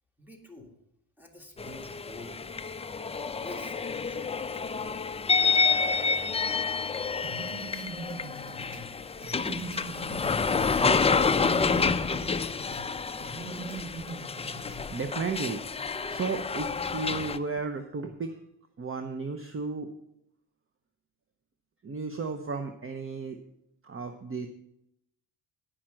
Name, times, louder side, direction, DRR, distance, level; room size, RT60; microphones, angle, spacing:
voice 1, 0.2-0.7 1.2-2.7 3.4-5.2, left 1 dB, 5° right, 3 dB, 1.9 m, -47 dB
sound 1, 1.6-17.4, left 5 dB, 15° left, 0.4 m, -29 dB
sound 2, 7.2-10.9 11.2-12.9 13.2-14.9, right 3 dB, 50° right, 1.3 m, -41 dB
voice 2, 14.9-15.6 16.1-16.7 16.9-18.4 18.8-19.9 21.8-23.4 23.8-24.5, right 4 dB, 30° right, 7 dB, 0.8 m, -33 dB
10.0 x 5.8 x 7.6 m, 0.82 s
cardioid pair, 95°, 43 cm